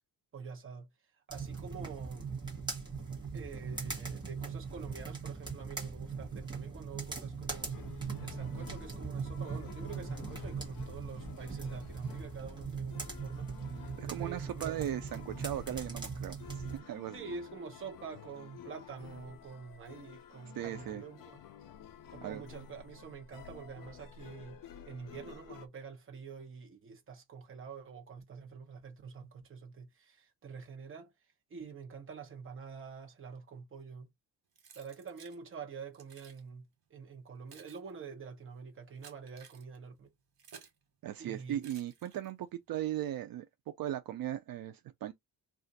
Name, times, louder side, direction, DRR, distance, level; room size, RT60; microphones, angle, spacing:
voice 1, 0.3-0.9 1.3-2.3 3.3-14.8 17.1-21.4 22.1-24.6 24.9-31.1 31.5-34.1 34.8-40.1 41.2-41.6, right 5 dB, 35° right, 0.8 m, -47 dB
sound 1, 1.3-16.8, right 5 dB, 10° right, 1.2 m, -40 dB
sound 2, 7.5-25.7, left 8 dB, 65° left, 0.5 m, -51 dB
voice 2, 14.0-17.2 20.5-21.0 22.2-22.4 41.0-43.5 43.8-45.1, right 12 dB, 70° right, 0.5 m, -38 dB
Keys jangling, 34.5-35.4 35.9-36.4 37.1-40.8 41.6-42.5, right 6 dB, 85° right, 1.3 m, -57 dB
2.5 x 2.4 x 3.9 m
wide cardioid pair, 175°, 36 cm